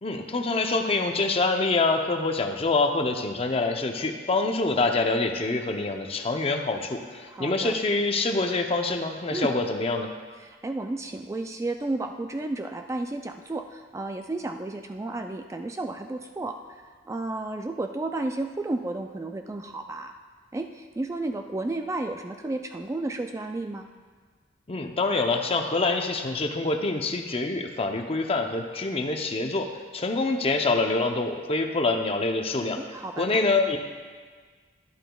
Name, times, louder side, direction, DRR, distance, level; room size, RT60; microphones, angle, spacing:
voice 1, 0.0-10.1 24.7-32.8 33.2-33.9, left 3 dB, 35° left, 4 dB, 0.6 m, -26 dB
voice 2, 7.3-7.8 9.3-9.5 10.4-20.2 20.5-23.9 32.8-33.3, right 2 dB, 15° right, 5 dB, 0.3 m, -32 dB
11.5 x 11.0 x 2.3 m, 1.5 s
head